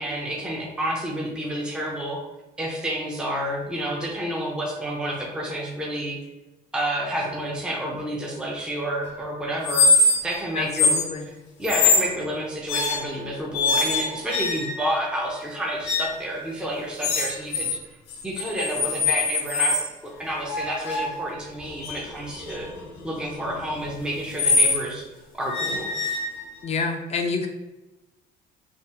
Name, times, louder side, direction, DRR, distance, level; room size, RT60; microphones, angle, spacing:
voice 1, 0.0-2.2 2.6-6.2 6.7-9.9 10.2-10.9 11.3-17.7 18.2-19.8 20.0-22.7 23.0-25.0 25.3-25.9, right 1 dB, 5° right, -2 dB, 0.6 m, -29 dB
sound 1, 9.6-10.4 10.7-11.1 11.6-12.1 12.7-13.2 13.5-14.9 15.8-16.2 17.0-17.8 18.1-19.9 20.5-24.8 25.5-26.7, left 3 dB, 90° left, 1.0 m, -23 dB
voice 2, 10.5-11.3 26.6-27.5, left 4 dB, 40° left, 4 dB, 0.4 m, -28 dB
3.4 x 2.4 x 2.8 m, 1.1 s
cardioid pair, 110°, 17 cm